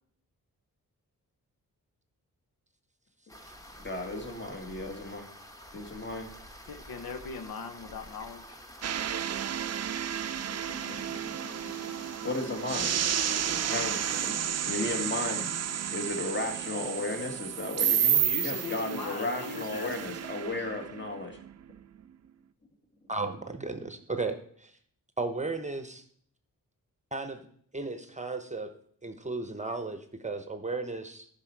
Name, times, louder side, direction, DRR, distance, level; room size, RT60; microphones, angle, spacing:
sound 1, 3.3-14.3, equal, 10° left, 1.2 m, -49 dB
voice 1, 3.8-5.3 5.7-6.3 12.2-13.0 13.5-14.3 14.7-15.6 15.9-21.4, left 2 dB, 30° left, 4 dB, 1.8 m, -34 dB
voice 2, 6.7-8.6 18.2-20.2, left 4 dB, 80° left, 8 dB, 0.9 m, -40 dB
sound 2, 8.8-21.8, right 9 dB, 45° right, 0.5 m, -31 dB
sound 3, 10.2-20.9 21.2-21.7 22.1-22.2 22.6-23.3, left 2 dB, 45° left, 2.6 m, -51 dB
voice 3, 23.1-24.7 25.2-26.0 27.1-27.4 27.7-28.7 29.0-31.3, right 3 dB, 20° right, 8 dB, 0.8 m, -35 dB
10.5 x 5.6 x 4.6 m, 0.62 s
cardioid pair, 80°, 36 cm